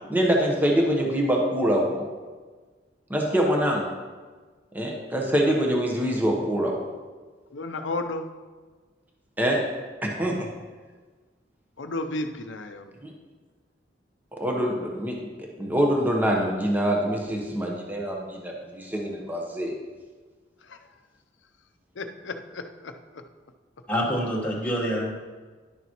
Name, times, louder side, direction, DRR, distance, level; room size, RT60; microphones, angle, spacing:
voice 1, 0.1-2.1 3.1-3.8 4.7-6.8 9.4-9.6 10.0-10.5 13.0-13.1 14.4-15.2 15.6-19.7, equal, 10° right, 0 dB, 1.0 m, -24 dB
voice 2, 7.5-8.3 11.8-12.9 20.7-20.8 22.0-22.9, left 2 dB, 85° left, 7 dB, 0.6 m, -33 dB
voice 3, 23.9-25.1, equal, 10° left, -4 dB, 1.4 m, -26 dB
11.0 x 6.9 x 3.0 m, 1.4 s
head